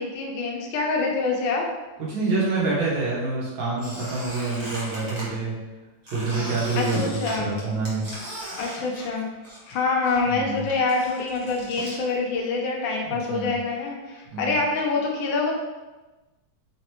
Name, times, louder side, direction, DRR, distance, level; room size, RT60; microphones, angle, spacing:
voice 1, 0.0-1.6 6.7-7.5 8.6-9.3 9.7-15.5, left 3 dB, 80° left, 0 dB, 1.5 m, -26 dB
voice 2, 2.0-5.5 6.1-8.1 10.3-10.6 13.1-13.5 14.3-14.5, right 3 dB, 75° right, -6 dB, 1.8 m, -27 dB
Squeak, 3.8-5.3 6.1-9.8 10.0-12.0, right 1 dB, 25° right, 1.0 m, -38 dB
4.0 x 3.4 x 3.0 m, 1.1 s
omnidirectional pair, 2.1 m